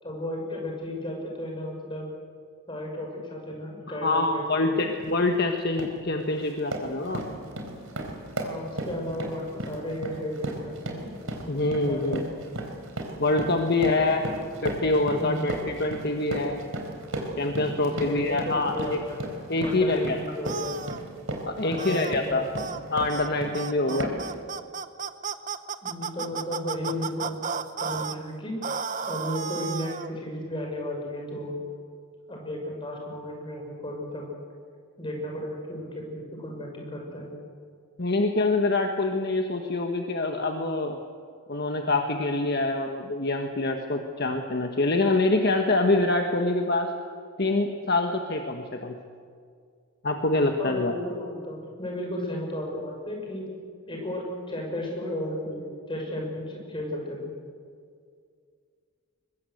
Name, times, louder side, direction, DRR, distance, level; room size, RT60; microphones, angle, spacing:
voice 1, 0.0-2.1 2.7-4.9 8.4-11.1 11.9-12.3 13.6-14.4 15.2-15.4 17.9-19.2 19.6-20.8 21.6-22.7 23.8-24.0 25.8-27.3 27.8-28.6 29.1-31.6 32.3-34.3 35.0-37.3 50.6-53.5 53.9-57.3, left 1 dB, 25° left, 0 dB, 6.2 m, -34 dB
voice 2, 3.9-7.2 11.5-12.2 13.2-14.2 14.6-16.6 17.4-19.0 19.5-20.2 21.5-22.5 22.9-24.1 38.0-41.0 41.5-46.9 47.4-48.9 50.0-50.9, left 2 dB, 50° left, 4 dB, 1.3 m, -25 dB
sound 1, 5.0-5.2 5.6-6.0 6.4-23.6 24.0-24.3, right 1 dB, 70° right, 4.0 m, -35 dB
sound 2, 20.4-21.0 21.8-22.1 22.6-22.8 23.1-23.3 23.5-28.2 28.6-30.1, right 6 dB, 35° right, 0.8 m, -33 dB
23.5 x 21.5 x 7.9 m, 2.1 s
head